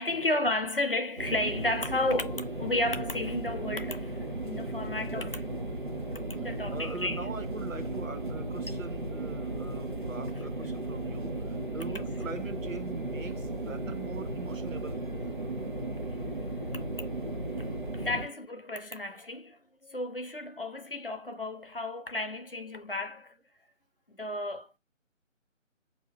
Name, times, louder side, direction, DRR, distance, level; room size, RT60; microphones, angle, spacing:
voice 1, 0.0-5.4 6.4-7.3 11.8-12.1 17.6-17.7 17.9-23.3 24.1-24.7, left 2 dB, 45° left, 0.5 m, -33 dB
sound 1, 1.2-18.3, right 2 dB, 40° right, 0.5 m, -35 dB
voice 2, 6.4-15.1, right 4 dB, 75° right, 0.8 m, -42 dB
3.1 x 2.7 x 4.4 m
figure-of-eight pair, 155°, 39 cm